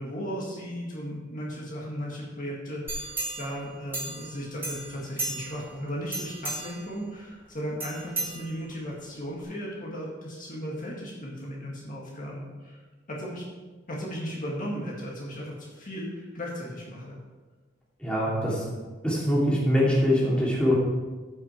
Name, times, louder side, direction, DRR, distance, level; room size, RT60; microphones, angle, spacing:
voice 1, 0.0-12.8 13.1-13.4 13.9-17.2 18.3-18.4, equal, 45° left, -4 dB, 1.9 m, -36 dB
sound 1, 2.9-4.3 4.6-5.7 6.1-6.9 7.8-8.9 9.4-9.5, right 2 dB, 10° right, 2.5 m, -34 dB
voice 2, 18.0-18.7 19.0-20.7, equal, 5° left, -6 dB, 2.7 m, -23 dB
14.0 x 6.0 x 4.5 m, 1.3 s
head